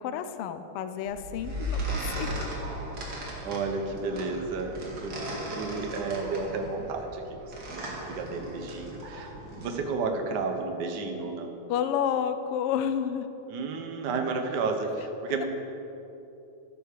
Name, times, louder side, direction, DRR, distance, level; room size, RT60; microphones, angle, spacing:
voice 1, 0.0-2.5 11.7-13.3 15.4-15.5, left 8 dB, 85° left, 10 dB, 1.2 m, -30 dB
sound 1, 1.1-9.7, right 1 dB, 40° right, 2.4 m, -37 dB
voice 2, 3.2-11.6 13.5-15.5, right 4 dB, 60° right, 4 dB, 1.1 m, -32 dB
13.0 x 9.4 x 6.8 m, 3.0 s
omnidirectional pair, 3.4 m